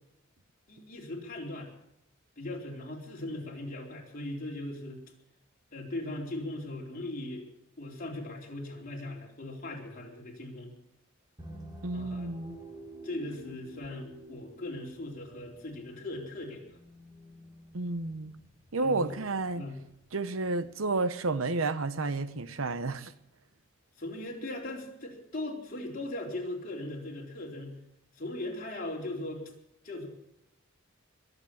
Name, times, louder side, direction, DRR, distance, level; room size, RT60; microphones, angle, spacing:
voice 1, 0.7-1.7 2.4-5.0 5.7-7.5 7.8-10.7 11.9-12.3 13.0-16.8 18.8-19.1 19.5-19.8 24.0-27.8 28.2-29.4 29.8-30.1, left 1 dB, 45° left, 4.1 m, -39 dB
sound 1, 11.4-20.1, right 1 dB, 20° right, 2.6 m, -50 dB
voice 2, 11.8-12.6 17.7-18.3 18.7-19.7 20.1-23.1, right 3 dB, 85° right, 0.9 m, -31 dB
22.0 x 8.2 x 7.2 m
head